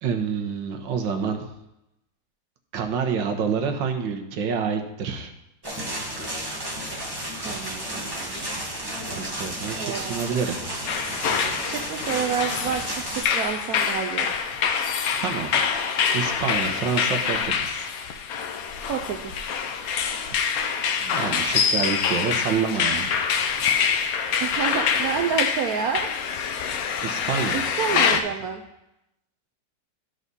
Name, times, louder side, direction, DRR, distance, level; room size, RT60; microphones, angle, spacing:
voice 1, 0.0-1.5 2.7-5.3 9.1-10.6 15.2-15.6 16.1-17.9 21.0-23.1 27.0-28.2, right 6 dB, 90° right, 5 dB, 1.7 m, -28 dB
sound 1, 5.6-13.2, right 1 dB, 15° right, 1.5 m, -32 dB
voice 2, 7.4-8.6 9.8-10.2 11.3-14.5 18.9-19.5 24.4-26.1 27.5-28.6, right 7 dB, 65° right, 2 dB, 0.9 m, -29 dB
sound 2, 10.9-28.2, left 6 dB, 60° left, 1.0 m, -25 dB
12.5 x 4.9 x 4.0 m, 0.88 s
omnidirectional pair, 2.0 m